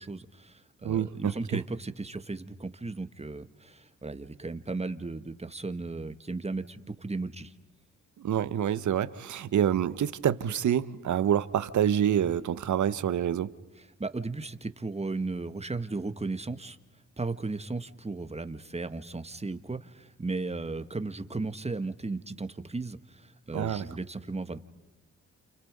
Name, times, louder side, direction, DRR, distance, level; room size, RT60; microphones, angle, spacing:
voice 1, 0.0-7.5 14.0-16.8 17.2-24.6, right 3 dB, 20° right, 1.8 m, -35 dB
voice 2, 0.8-1.6 8.2-13.5 23.5-23.9, right 9 dB, 55° right, 1.1 m, -27 dB
29.5 x 29.0 x 5.4 m
hypercardioid pair, 45°, 34 cm